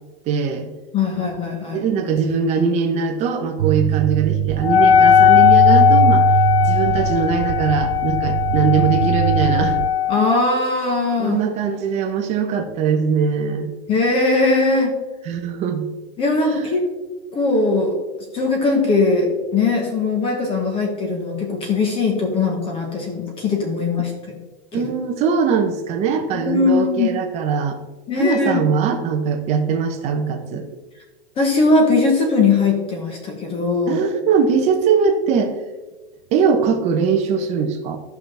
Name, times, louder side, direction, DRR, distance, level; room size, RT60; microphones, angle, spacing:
voice 1, 0.3-0.7 1.7-6.3 6.6-9.8 11.2-13.7 15.2-15.9 16.5-16.7 24.7-27.8 28.2-30.7 33.9-35.5 36.3-38.0, right 6 dB, 20° right, 3 dB, 0.9 m, -21 dB
voice 2, 0.9-1.8 10.1-11.4 13.9-15.0 16.2-16.8 17.3-17.9 18.3-24.1 24.7-24.9 26.3-27.2 28.1-28.7 31.4-34.0, left 3 dB, 15° left, 2 dB, 1.3 m, -20 dB
sound 1, 3.6-9.9, right 17 dB, 50° right, 0.4 m, -22 dB
Wind instrument woodwind instrument, 4.6-10.4, left 10 dB, 65° left, 0.9 m, -16 dB
13.5 x 6.0 x 3.4 m, 1.2 s
hypercardioid pair, 160°, 32 cm